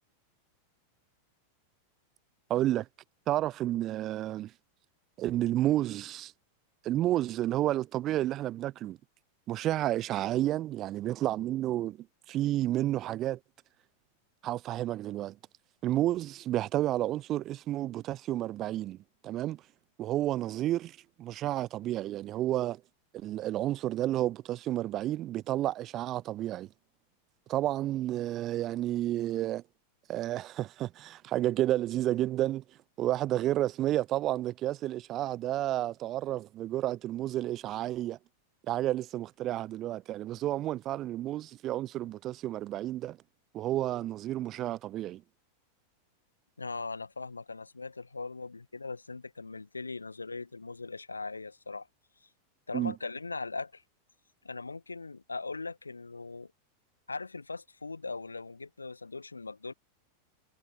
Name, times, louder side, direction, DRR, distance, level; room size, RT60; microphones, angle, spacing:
voice 1, 2.5-2.9 3.3-4.5 5.2-6.3 6.8-9.0 9.5-12.0 12.3-13.4 14.4-15.4 15.8-19.0 19.2-19.6 20.0-22.8 23.2-26.7 27.5-29.6 30.1-32.6 33.0-38.2 38.7-43.2 43.5-45.2 52.7-52.9, right 14 dB, 35° right, 0.9 m, -31 dB
voice 2, 46.6-51.9 52.7-53.8 54.4-56.5 57.1-59.7, left 3 dB, 80° left, 1.7 m, -40 dB
figure-of-eight pair, 90°, 0 cm